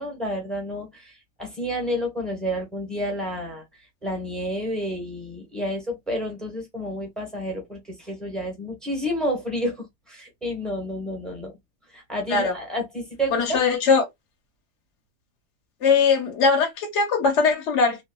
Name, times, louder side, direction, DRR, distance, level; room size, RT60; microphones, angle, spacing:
voice 1, 0.0-3.6 4.0-11.5 11.9-13.6, equal, ahead, 1.0 m, -30 dB
voice 2, 13.3-14.0 15.8-18.0, left 5 dB, 50° left, 1.2 m, -20 dB
2.9 x 2.4 x 2.3 m
omnidirectional pair, 1.7 m